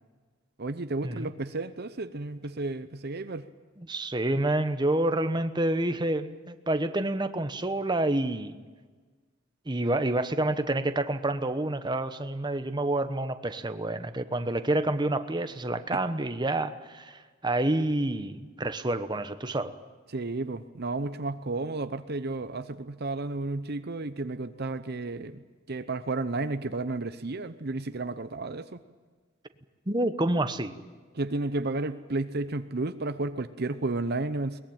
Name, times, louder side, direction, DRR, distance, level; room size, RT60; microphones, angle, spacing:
voice 1, 0.6-3.5 15.9-16.0 20.1-25.4 25.7-28.8 31.1-34.6, right 2 dB, 55° right, 11 dB, 0.8 m, -32 dB
voice 2, 3.9-8.6 9.7-19.7 29.9-30.7, right 1 dB, 20° right, 9 dB, 1.1 m, -28 dB
22.5 x 20.5 x 8.9 m, 1.4 s
head